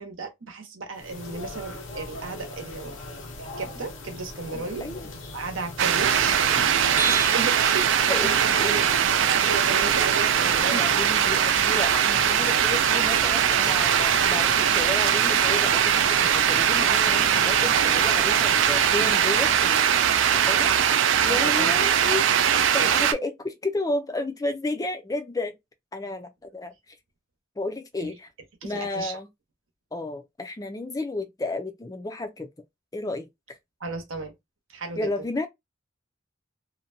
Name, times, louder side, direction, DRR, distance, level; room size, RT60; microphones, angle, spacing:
voice 1, 0.0-2.9 3.4-4.8 5.3-6.4 6.8-7.9 8.2-10.8 20.4-21.7 28.0-28.1 28.6-29.2 33.8-34.3 34.7-35.1, right 4 dB, 85° right, 0.9 m, -35 dB
sound 1, 0.9-19.6, left 2 dB, 75° left, 0.7 m, -39 dB
voice 2, 4.5-5.1 8.1-8.9 10.4-19.9 20.3-20.7 21.2-25.6 25.9-26.7 27.6-28.3 28.6-29.3 29.9-32.5 32.9-33.6 35.0-35.5, left 2 dB, 20° left, 0.4 m, -32 dB
sound 2, 5.8-23.1, right 8 dB, 70° right, 0.3 m, -21 dB
sound 3, 7.0-11.7, right 3 dB, 40° right, 0.7 m, -36 dB
2.6 x 2.1 x 2.5 m
head